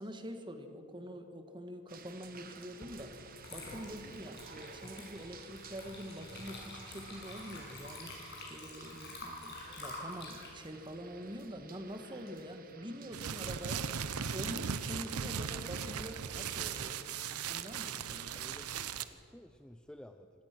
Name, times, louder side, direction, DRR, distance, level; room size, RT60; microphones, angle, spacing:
voice 1, 0.0-13.9 14.3-18.4, equal, 20° right, 7 dB, 1.5 m, -45 dB
sound 1, 1.9-18.3, right 6 dB, 40° right, 1.3 m, -54 dB
Water / Liquid, 2.8-3.0 3.4-11.9, left 2 dB, 50° left, 6.3 m, -48 dB
sound 2, 13.1-19.0, right 7 dB, 85° right, 0.8 m, -38 dB
voice 2, 18.3-20.4, equal, 5° left, 7 dB, 0.4 m, -54 dB
25.0 x 18.0 x 6.1 m, 2.9 s
head